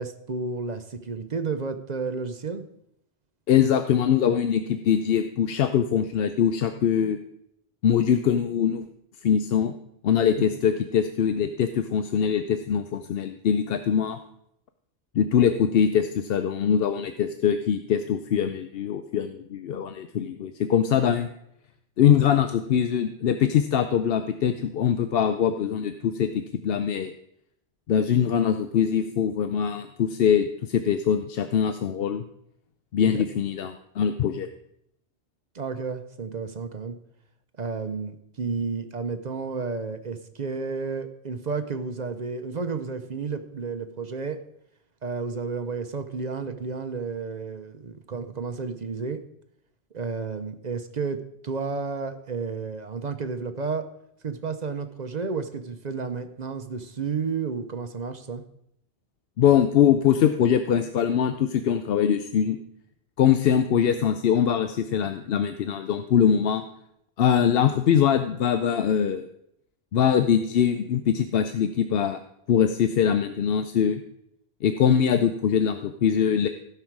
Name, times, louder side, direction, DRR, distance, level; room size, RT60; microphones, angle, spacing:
voice 1, 0.0-2.6 10.4-10.5 33.0-33.2 35.5-37.0 37.6-44.4 45.0-49.2 49.9-53.9 54.2-58.4, right 4 dB, 45° right, 8 dB, 0.8 m, -31 dB
voice 2, 3.5-7.2 7.8-8.8 9.2-9.7 10.0-14.2 15.1-21.3 22.0-27.1 27.9-32.2 32.9-34.5 59.4-62.6 63.2-66.6 67.2-69.3 69.9-72.2 72.5-74.0 74.6-76.5, left 8 dB, 65° left, 8 dB, 0.8 m, -22 dB
16.0 x 5.8 x 4.6 m, 0.76 s
omnidirectional pair, 1.1 m